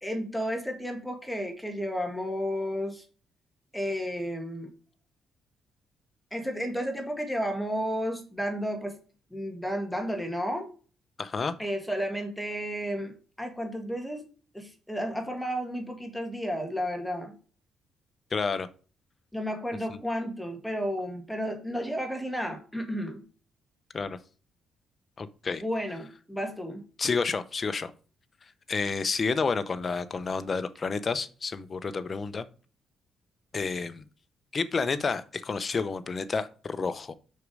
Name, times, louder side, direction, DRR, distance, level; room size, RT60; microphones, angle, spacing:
voice 1, 0.0-3.1 3.7-4.7 6.3-8.9 9.3-10.7 11.6-14.3 14.5-17.3 19.3-23.2 25.6-26.8, equal, 5° left, 4 dB, 1.9 m, -32 dB
voice 2, 11.2-11.5 18.3-18.7 23.9-24.2 25.2-25.6 27.0-27.9 28.7-32.4 33.5-34.0 34.5-37.1, left 4 dB, 35° left, 13 dB, 0.8 m, -30 dB
6.5 x 5.3 x 4.8 m, 0.37 s
cardioid pair, 90°, 0 cm